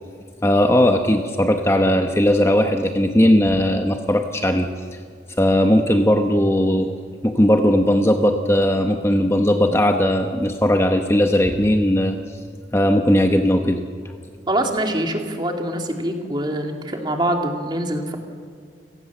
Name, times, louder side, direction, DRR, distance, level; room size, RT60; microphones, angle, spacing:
voice 1, 0.4-4.7 5.4-6.9 7.2-12.2 12.7-13.8, left 1 dB, 15° left, 5 dB, 1.0 m, -18 dB
voice 2, 14.5-18.2, right 1 dB, 25° right, 3 dB, 2.5 m, -24 dB
29.0 x 18.0 x 7.3 m, 2.1 s
head